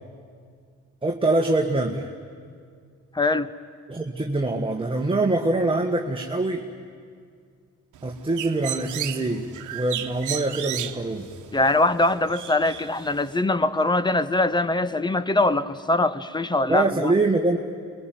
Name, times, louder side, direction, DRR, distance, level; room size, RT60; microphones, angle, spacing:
voice 1, 1.0-2.1 3.9-6.7 8.0-11.3 16.7-17.6, right 2 dB, 15° right, 2 dB, 1.8 m, -24 dB
voice 2, 3.1-3.5 11.5-17.1, left 2 dB, 15° left, 15 dB, 1.0 m, -22 dB
Bird, 7.9-13.4, right 11 dB, 75° right, 1.2 m, -35 dB
28.0 x 22.5 x 9.4 m, 2.1 s
cardioid pair, 90°, 30 cm